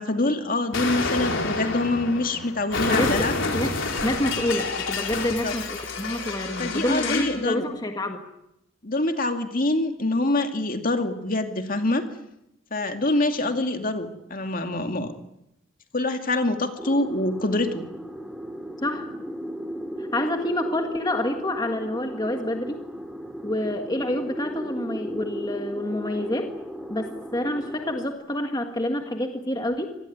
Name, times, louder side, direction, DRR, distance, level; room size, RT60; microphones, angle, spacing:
voice 1, 0.0-3.3 5.4-5.5 6.6-7.7 8.8-12.0 12.7-15.1 15.9-17.8, left 2 dB, 45° left, 6 dB, 2.4 m, -25 dB
Explosion, 0.7-7.4, left 3 dB, 65° left, 4.7 m, -28 dB
voice 2, 2.9-3.2 3.5-3.7 4.0-8.2 18.8-19.1 20.0-22.8 23.4-26.5 26.9-30.0, left 1 dB, 20° left, 4 dB, 1.8 m, -27 dB
sound 1, 16.8-28.1, equal, ahead, 2.7 m, -36 dB
26.0 x 19.5 x 9.5 m, 0.85 s
head